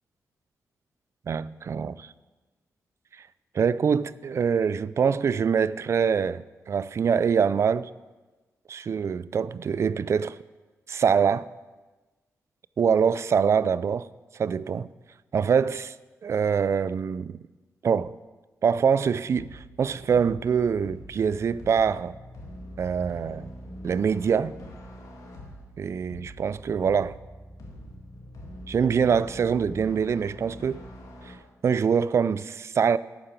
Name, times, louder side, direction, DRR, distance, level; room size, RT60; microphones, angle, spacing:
voice 1, 1.3-1.9 3.5-7.9 8.7-10.4 10.9-11.5 12.8-14.1 14.3-14.9 15.3-15.9 16.2-17.4 17.8-18.1 18.6-22.2 22.8-23.5 23.8-24.5 25.8-27.2 28.7-30.8 31.2-31.4 31.6-33.0, right 6 dB, 50° right, 0.3 m, -24 dB
sound 1, 19.3-31.3, equal, 80° left, 1.9 m, -44 dB
11.5 x 4.8 x 6.8 m
cardioid pair, 85°, 6 cm